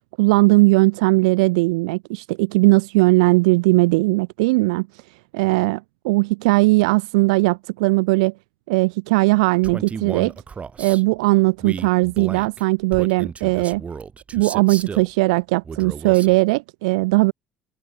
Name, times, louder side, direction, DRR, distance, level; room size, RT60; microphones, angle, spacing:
voice 1, 0.2-8.3 8.7-10.3 10.8-13.8 14.3-17.3, right 25 dB, 80° right, 0.5 m, -18 dB
Male speech man speaking, 9.6-11.0 11.6-15.1 15.6-16.4, right 5 dB, 35° right, 2.2 m, -34 dB
hypercardioid pair, 60°, 4 cm